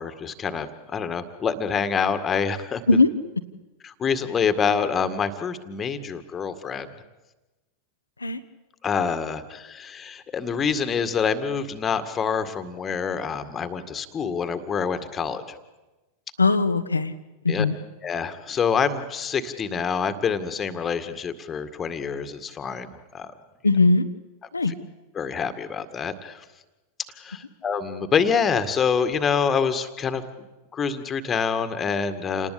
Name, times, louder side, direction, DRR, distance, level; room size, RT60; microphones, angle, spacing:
voice 1, 0.0-3.0 3.8-6.9 8.8-15.6 17.5-17.7 18.0-22.9 23.1-23.3 24.7-24.8 25.1-26.4 27.2-30.2 30.7-32.5, left 6 dB, 20° left, 10 dB, 2.0 m, -26 dB
voice 2, 16.4-17.1 17.4-17.7 23.6-24.0 24.5-24.7, left 3 dB, 80° left, 10 dB, 1.3 m, -19 dB
28.5 x 19.5 x 8.5 m, 1.1 s
figure-of-eight pair, 90°, 0 cm